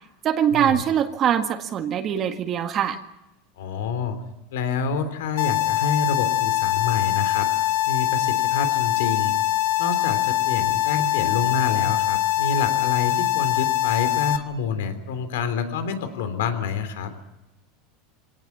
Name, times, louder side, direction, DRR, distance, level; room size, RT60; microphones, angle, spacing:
voice 1, 0.2-3.0, right 9 dB, 35° right, 6 dB, 1.8 m, -23 dB
voice 2, 3.6-4.2 4.5-7.5 7.9-9.3 9.8-17.1, left 5 dB, 90° left, 10 dB, 3.4 m, -27 dB
sound 1, 5.4-14.4, left 15 dB, 65° left, 1.6 m, -23 dB
26.0 x 18.0 x 7.4 m, 0.95 s
supercardioid pair, 140°, 0 cm